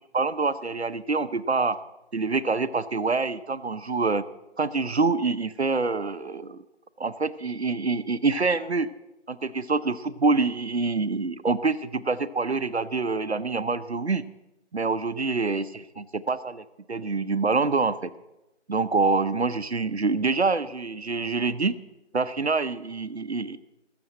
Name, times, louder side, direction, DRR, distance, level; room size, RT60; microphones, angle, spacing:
voice 1, 0.1-1.8 2.1-4.2 4.6-6.6 7.0-8.9 9.3-14.2 14.7-15.6 16.1-18.1 18.7-21.7 22.1-23.6, right 4 dB, 60° right, 12 dB, 0.8 m, -26 dB
20.5 x 7.0 x 7.7 m, 0.98 s
figure-of-eight pair, 175°, 36 cm